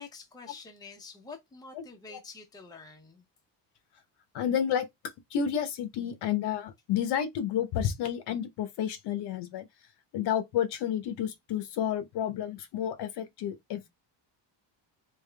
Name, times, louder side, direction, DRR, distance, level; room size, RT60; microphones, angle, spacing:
voice 1, 0.0-3.2, left 4 dB, 10° left, 0.7 m, -47 dB
voice 2, 4.3-4.9 5.3-9.7 10.1-13.9, left 9 dB, 65° left, 0.9 m, -30 dB
3.5 x 3.0 x 3.3 m
cardioid pair, 180°, 44 cm